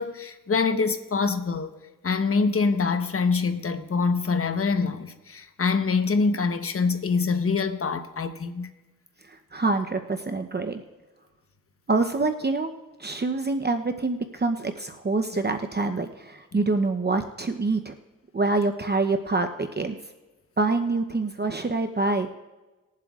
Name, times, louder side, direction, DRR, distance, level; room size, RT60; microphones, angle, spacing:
voice 1, 0.0-1.7 2.0-8.7 16.5-16.6, left 4 dB, 45° left, 1.1 m, -25 dB
voice 2, 9.2-10.8 11.9-12.7 13.0-17.9 18.3-20.0 20.6-22.3, right 3 dB, 30° right, 0.8 m, -26 dB
20.5 x 7.5 x 2.5 m
cardioid pair, 50°, 32 cm